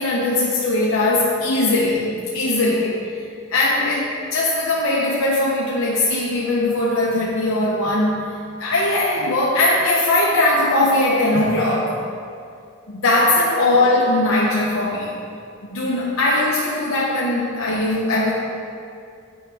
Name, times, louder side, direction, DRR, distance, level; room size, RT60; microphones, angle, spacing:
voice 1, 0.0-3.2 3.5-11.9 12.9-15.2 15.7-18.3, left 2 dB, 85° left, -5 dB, 0.8 m, -20 dB
8.6 x 5.5 x 3.4 m, 2.4 s
head